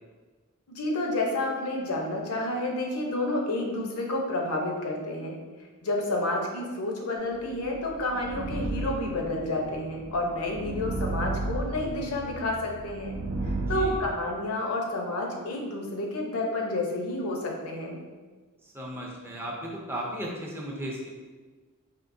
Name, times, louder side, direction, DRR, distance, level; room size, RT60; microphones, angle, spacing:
voice 1, 0.7-5.4 5.8-13.2 13.4-18.0, left 2 dB, 75° left, 0 dB, 0.7 m, -30 dB
sound 1, 7.5-14.0, right 2 dB, 65° right, 0.4 m, -33 dB
voice 2, 18.7-21.1, equal, 10° right, -2 dB, 0.5 m, -35 dB
4.4 x 2.8 x 2.6 m, 1.4 s
head